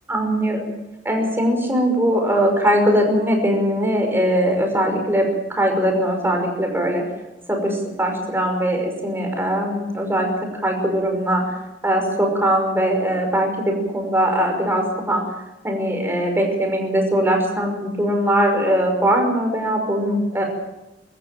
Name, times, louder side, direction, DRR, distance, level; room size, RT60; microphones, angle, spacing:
voice 1, 0.1-0.7 1.0-7.1 7.5-15.2 15.6-20.4, equal, 10° right, 2 dB, 5.6 m, -21 dB
24.0 x 14.0 x 9.2 m, 0.98 s
head